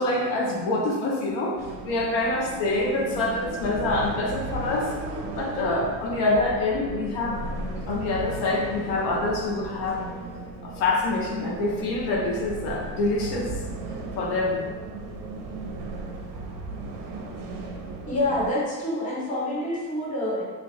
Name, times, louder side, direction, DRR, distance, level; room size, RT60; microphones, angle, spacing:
voice 1, 0.0-1.6 1.8-4.9 5.4-10.1 10.6-13.6 14.2-14.6, left 2 dB, 70° left, -1 dB, 0.7 m, -26 dB
sound 1, 1.6-18.5, right 2 dB, 55° right, 0.5 m, -36 dB
voice 2, 18.1-20.4, left 1 dB, 20° left, -5 dB, 0.6 m, -27 dB
3.0 x 2.6 x 3.0 m, 1.4 s
cardioid pair, 145°, 40 cm